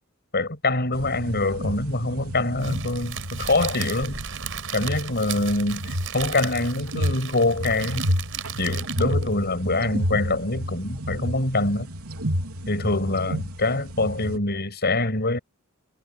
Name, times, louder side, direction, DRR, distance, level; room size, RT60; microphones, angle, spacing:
voice 1, 0.3-4.2 4.7-8.1 8.6-11.9 12.7-15.4, left 2 dB, 50° left, 7.5 m, -24 dB
sound 1, 0.9-14.4, equal, 85° right, 3.7 m, -31 dB
Crackle, 2.6-9.3, right 8 dB, 60° right, 6.8 m, -35 dB
head